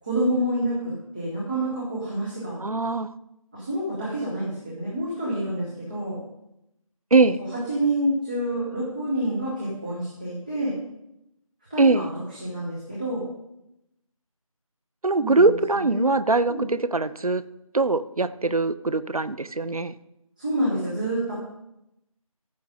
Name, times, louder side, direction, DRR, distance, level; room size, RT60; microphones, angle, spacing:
voice 1, 0.0-2.6 3.5-6.2 7.7-10.7 11.7-12.1 12.4-13.2 15.2-16.0 16.5-16.6 20.4-21.3, right 1 dB, 15° right, -9 dB, 1.4 m, -28 dB
voice 2, 2.6-3.1 7.1-7.4 11.8-12.1 15.0-17.4 17.7-19.9, right 3 dB, 80° right, 15 dB, 0.7 m, -22 dB
14.0 x 6.9 x 3.8 m, 0.85 s
figure-of-eight pair, 170°, 18 cm